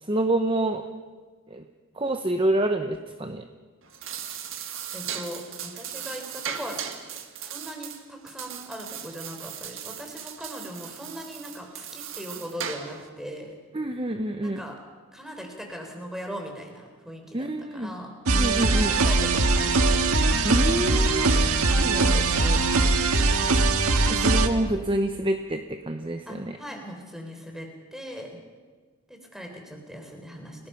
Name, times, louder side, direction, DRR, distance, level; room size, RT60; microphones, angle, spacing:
voice 1, 0.0-0.8 1.5-1.6 2.0-3.5 13.7-14.6 17.3-17.9 18.4-19.0 20.4-21.3 21.8-22.6 24.1-26.6, right 1 dB, 25° right, 7 dB, 0.8 m, -27 dB
sound 1, 3.8-13.1, right 8 dB, 65° right, 1.9 m, -38 dB
voice 2, 4.9-6.8 7.4-13.6 14.4-14.8 15.1-18.1 18.8-20.1 26.3-28.3 29.1-30.7, equal, ahead, 2 dB, 3.8 m, -40 dB
sound 2, 18.3-24.5, right 3 dB, 90° right, 1.8 m, -21 dB
30.0 x 19.0 x 5.8 m, 1.5 s
head